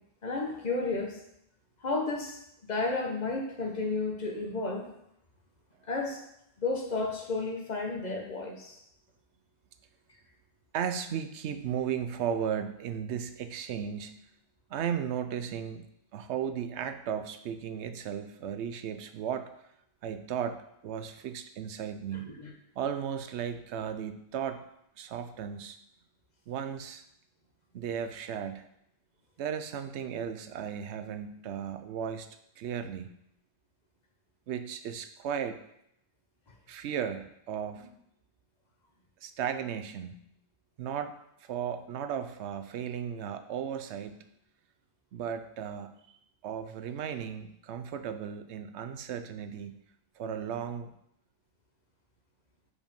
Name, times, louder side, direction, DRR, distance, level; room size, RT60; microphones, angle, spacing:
voice 1, 0.2-1.2 1.8-2.4 2.7-4.9 5.9-6.2 6.6-8.8 22.4-22.5, left 3 dB, 40° left, 1 dB, 1.2 m, -32 dB
voice 2, 10.7-14.2 14.7-15.9 16.1-19.5 20.0-22.3 22.8-24.6 25.0-25.8 26.5-27.0 27.7-28.6 29.4-32.3 32.6-33.1 34.5-35.6 36.7-37.9 39.2-40.2 40.8-44.3 45.1-46.2 46.4-49.8 50.2-50.9, right 8 dB, 80° right, 9 dB, 0.9 m, -35 dB
5.1 x 4.9 x 5.2 m, 0.76 s
omnidirectional pair, 1.1 m